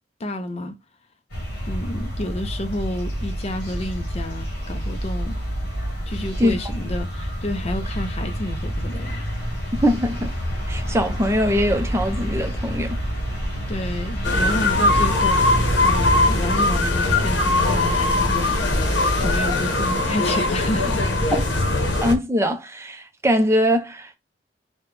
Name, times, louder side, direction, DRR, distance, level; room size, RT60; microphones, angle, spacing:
voice 1, 0.2-0.7 1.7-5.4 6.1-9.2 13.7-18.7 19.2-21.4, left 1 dB, 35° left, 0.6 m, -30 dB
sound 1, 1.3-19.4, equal, 60° left, 1.8 m, -27 dB
voice 2, 9.7-10.3 10.7-13.0 22.0-24.2, equal, 15° right, 0.6 m, -22 dB
sound 2, 14.2-22.1, left 2 dB, 80° left, 1.0 m, -21 dB
4.2 x 2.2 x 3.3 m
head